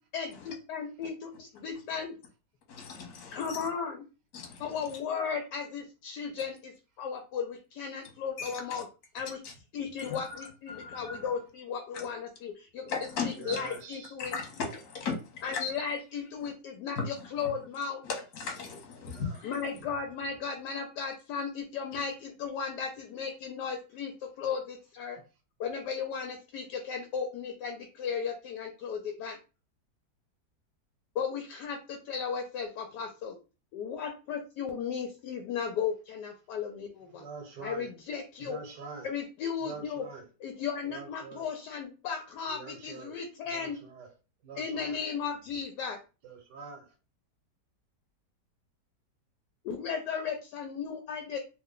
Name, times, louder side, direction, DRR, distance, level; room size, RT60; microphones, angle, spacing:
voice 1, 0.1-2.2 3.3-4.0 4.6-8.8 9.1-9.4 9.7-14.3 15.4-18.0 19.4-25.2 25.6-29.4 31.2-33.4 33.7-37.2 37.6-38.6 39.0-40.0 40.4-43.8 44.6-46.0 49.6-51.4, left 6 dB, 80° left, 1.1 m, -35 dB
voice 2, 2.7-3.7 4.3-4.8 8.4-8.8 9.4-9.5 10.0-11.3 11.9-12.1 12.9-13.6 14.2-15.6 16.4-16.5 17.0-17.5 18.0-19.6, left 5 dB, 55° left, 1.3 m, -38 dB
voice 3, 13.4-14.2 19.1-19.4 19.8-19.9 37.1-37.9 38.4-39.1 39.6-40.3 40.8-41.5 42.5-43.2 43.4-44.1 44.4-45.0 46.2-46.9, right 4 dB, 80° right, 1.5 m, -45 dB
3.2 x 2.2 x 3.6 m
omnidirectional pair, 1.8 m